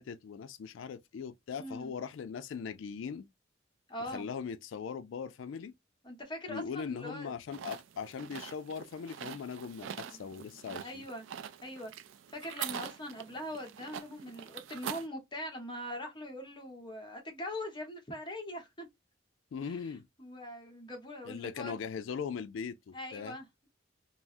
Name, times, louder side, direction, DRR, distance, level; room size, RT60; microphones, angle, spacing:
voice 1, 0.0-3.3 4.0-5.7 6.5-11.0 19.5-20.1 21.2-23.4, left 6 dB, 80° left, 0.3 m, -40 dB
voice 2, 1.6-1.9 3.9-4.3 6.0-7.4 9.9-10.5 10.8-11.2 11.6-11.9 12.3-18.9 19.6-19.8 20.2-21.8 22.9-23.4, left 1 dB, 25° left, 1.0 m, -42 dB
sound 1, 7.5-15.1, right 9 dB, 75° right, 0.3 m, -44 dB
3.4 x 2.0 x 2.5 m
head